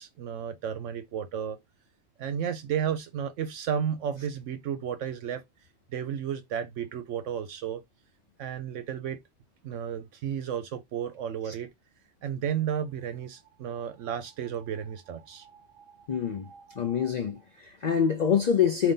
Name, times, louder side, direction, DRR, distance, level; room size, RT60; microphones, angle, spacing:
voice 1, 0.0-1.6 2.2-5.4 5.9-7.8 8.4-9.2 9.6-11.7 12.2-17.1, right 8 dB, 75° right, 0.9 m, -33 dB
voice 2, 16.1-16.5 16.8-18.9, left 7 dB, 55° left, 0.4 m, -26 dB
3.9 x 2.8 x 3.7 m
omnidirectional pair, 1.3 m